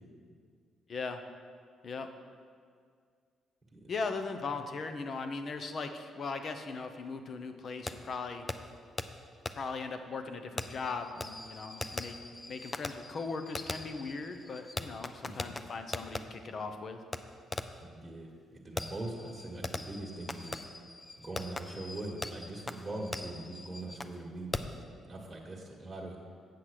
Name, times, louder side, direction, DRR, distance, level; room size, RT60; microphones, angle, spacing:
voice 1, 0.9-1.2 1.8-2.1 3.9-8.5 9.6-12.2 12.5-17.0, left 4 dB, 50° left, 7 dB, 0.8 m, -38 dB
Fireworks, 7.9-8.0 8.5-8.6 9.0-9.1 9.5-9.6 10.6-16.2 17.1-17.2 17.5-17.8 18.8-24.2 24.5-24.8, left 2 dB, 20° left, 0.5 m, -40 dB
voice 2, 17.8-20.7 21.2-26.2, right 2 dB, 20° right, -3 dB, 1.5 m, -42 dB
8.4 x 5.8 x 6.5 m, 2.1 s
cardioid pair, 90°, 0 cm